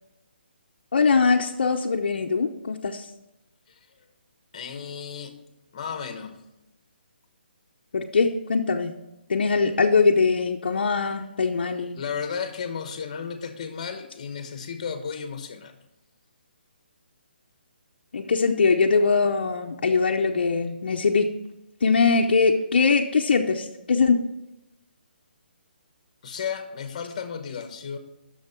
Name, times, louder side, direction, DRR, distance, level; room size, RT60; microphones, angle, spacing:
voice 1, 0.9-3.1 7.9-8.9 9.3-12.0 18.1-21.3 21.8-24.2, left 4 dB, 60° left, 1 dB, 0.7 m, -22 dB
voice 2, 4.5-5.4 5.7-6.4 11.9-15.7 26.2-28.0, left 6 dB, 35° left, 8 dB, 1.1 m, -33 dB
10.5 x 6.4 x 4.5 m, 0.93 s
hypercardioid pair, 170°, 6 cm